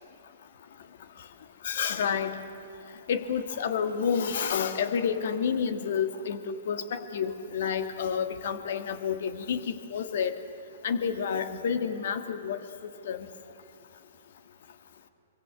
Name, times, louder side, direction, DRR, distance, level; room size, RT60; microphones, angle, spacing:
voice 1, 1.6-2.3 3.1-10.3 10.8-12.6 13.1-13.2, left 7 dB, 60° left, 9 dB, 1.9 m, -29 dB
25.5 x 24.0 x 7.7 m, 2.9 s
hypercardioid pair, 115°, 0 cm